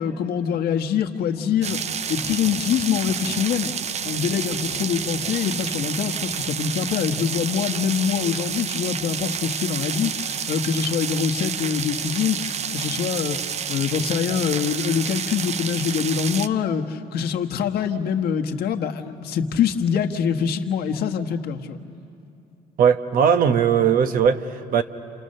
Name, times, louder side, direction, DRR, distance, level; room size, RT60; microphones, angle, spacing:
voice 1, 0.0-3.7 4.0-21.8, left 7 dB, 70° left, 1.4 m, -24 dB
sound 1, 1.6-16.5, right 7 dB, 40° right, 0.6 m, -29 dB
voice 2, 22.8-24.8, right 7 dB, 55° right, 1.1 m, -19 dB
29.5 x 28.5 x 6.6 m
cardioid pair, 110°, 17 cm